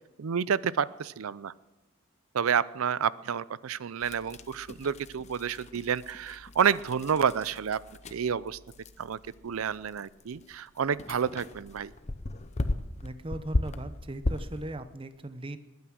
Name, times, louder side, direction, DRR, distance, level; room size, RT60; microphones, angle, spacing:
voice 1, 0.2-1.5 2.3-7.8 8.1-8.6 9.0-11.9, right 7 dB, 80° right, 19 dB, 0.5 m, -29 dB
sound 1, 4.0-14.7, left 2 dB, 35° left, 0.7 m, -37 dB
voice 2, 13.0-15.6, right 1 dB, 25° right, 11 dB, 0.7 m, -38 dB
20.5 x 9.4 x 6.2 m, 1.1 s
head